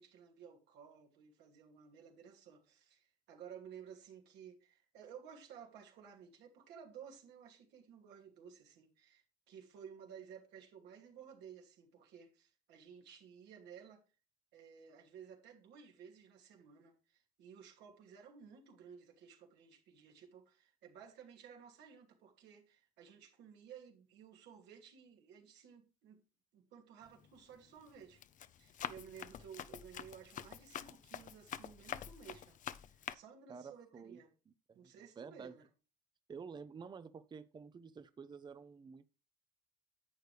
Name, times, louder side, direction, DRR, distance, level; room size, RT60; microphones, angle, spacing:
voice 1, 0.0-14.0 14.5-26.2 26.5-28.2 28.6-32.6 32.9-34.3 34.7-35.6, right 7 dB, 85° right, 2.7 m, -56 dB
Run, 27.1-27.4 27.9-33.1, left 10 dB, 50° left, 0.6 m, -46 dB
voice 2, 33.5-34.2 34.5-35.5 36.3-39.0, right 5 dB, 25° right, 0.6 m, -51 dB
11.0 x 8.0 x 3.3 m
cardioid pair, 110°, 17 cm